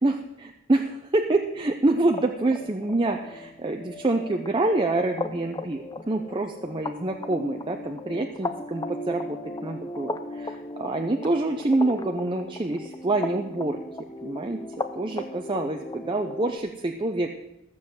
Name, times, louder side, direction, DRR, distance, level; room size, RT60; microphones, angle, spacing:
voice 1, 0.0-13.8 14.2-14.6 15.0-17.3, right 2 dB, 25° right, 3 dB, 0.6 m, -26 dB
sound 1, 2.0-16.6, left 2 dB, 20° left, 0.6 m, -37 dB
14.0 x 7.2 x 7.9 m, 0.91 s
head